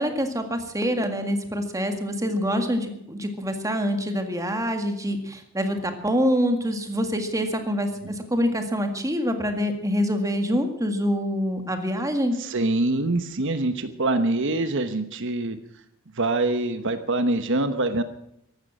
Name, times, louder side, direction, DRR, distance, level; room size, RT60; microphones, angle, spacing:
voice 1, 0.0-12.4, equal, 15° right, 6 dB, 1.9 m, -25 dB
voice 2, 12.4-15.6 16.2-18.0, right 2 dB, 60° right, 10 dB, 1.1 m, -24 dB
15.0 x 12.0 x 7.6 m, 0.75 s
head